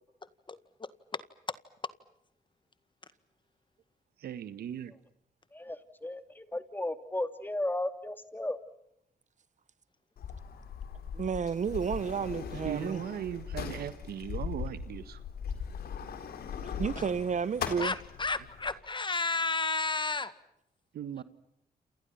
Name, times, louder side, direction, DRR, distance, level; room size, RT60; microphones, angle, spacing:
voice 1, 0.5-1.2 17.0-17.1 17.8-20.3, left 3 dB, 30° left, 1.9 m, -32 dB
voice 2, 4.2-4.9 12.6-15.2 20.9-21.2, right 10 dB, 80° right, 1.6 m, -38 dB
voice 3, 5.5-8.6, left 1 dB, 10° left, 2.7 m, -35 dB
Sliding door, 10.2-18.7, left 7 dB, 75° left, 3.9 m, -39 dB
voice 4, 11.1-13.0 16.7-17.9, right 6 dB, 50° right, 0.9 m, -31 dB
29.0 x 28.0 x 5.8 m
cardioid pair, 65°, 16 cm